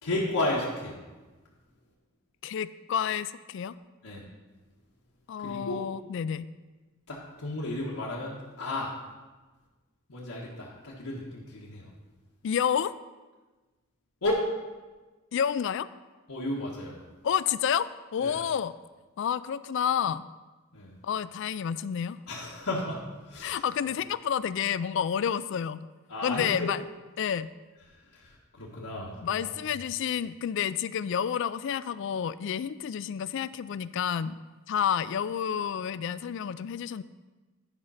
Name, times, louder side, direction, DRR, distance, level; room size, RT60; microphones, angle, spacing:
voice 1, 0.0-1.0 4.0-4.2 5.4-5.8 7.1-8.9 10.1-11.9 14.2-14.4 16.3-17.0 18.2-18.4 20.7-20.9 22.3-23.6 26.1-26.7 28.1-29.5, left 1 dB, 85° left, -6 dB, 1.4 m, -33 dB
voice 2, 2.4-3.7 5.3-6.4 12.4-12.9 15.3-15.9 17.2-17.9 18.1-18.7 19.2-20.2 21.0-22.2 23.4-25.9 26.2-26.8 27.2-27.5 29.2-34.4 34.7-37.0, left 8 dB, 55° left, 16 dB, 0.3 m, -29 dB
11.0 x 5.1 x 5.6 m, 1.3 s
head